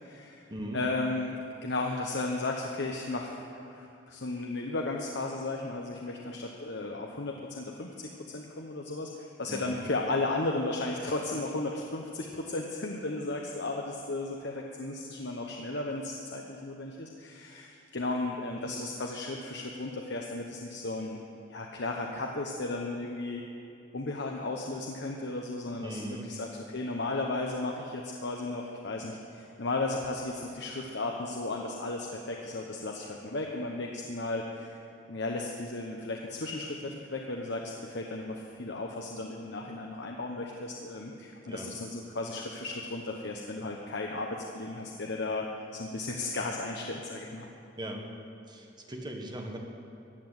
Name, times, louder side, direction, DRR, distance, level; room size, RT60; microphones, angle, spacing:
voice 1, 0.0-0.5 0.7-21.2 21.5-23.4 23.9-34.8 35.1-47.5, left 2 dB, 65° left, 1 dB, 1.0 m, -35 dB
voice 2, 9.5-9.8 25.8-26.3 41.5-41.7 47.8-48.1 48.5-49.6, right 1 dB, 25° right, 2 dB, 1.6 m, -39 dB
15.0 x 9.2 x 8.0 m, 2.8 s
head